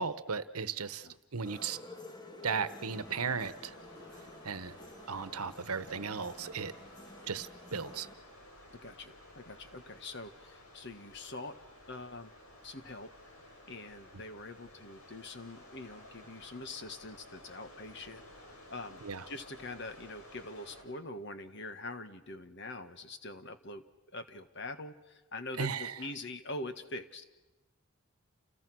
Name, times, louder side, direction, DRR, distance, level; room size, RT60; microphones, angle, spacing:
voice 1, 0.0-1.8 2.4-3.8 4.4-4.8 5.1-6.7 7.3-8.1 14.1-14.2 19.0-19.3 25.6-26.1, right 5 dB, 85° right, 13 dB, 1.1 m, -36 dB
sound 1, 1.4-8.1, left 1 dB, 20° left, 1.6 m, -51 dB
sound 2, 2.9-20.8, left 1 dB, 90° left, 7.6 m, -54 dB
voice 2, 8.8-11.6 11.9-12.3 12.6-13.1 13.7-18.2 18.7-19.0 19.3-23.8 24.1-27.2, left 2 dB, 50° left, 9 dB, 1.7 m, -44 dB
29.5 x 29.5 x 6.3 m, 1.0 s
head